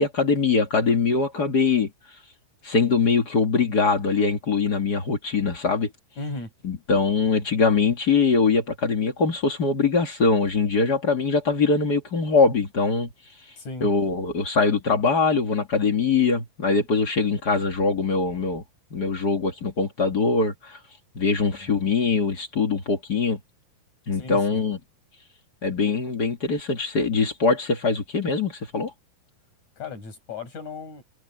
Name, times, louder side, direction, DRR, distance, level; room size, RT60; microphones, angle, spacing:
voice 1, 0.0-1.9 2.6-5.9 6.6-13.1 13.8-18.6 18.9-20.8 21.1-23.4 24.1-24.8 25.6-28.9, left 4 dB, 35° left, 1.8 m, -22 dB
voice 2, 6.2-6.5 13.6-13.9 21.5-21.7 24.1-24.6 29.8-31.0, left 3 dB, 50° left, 7.9 m, -36 dB
omnidirectional pair, 4.1 m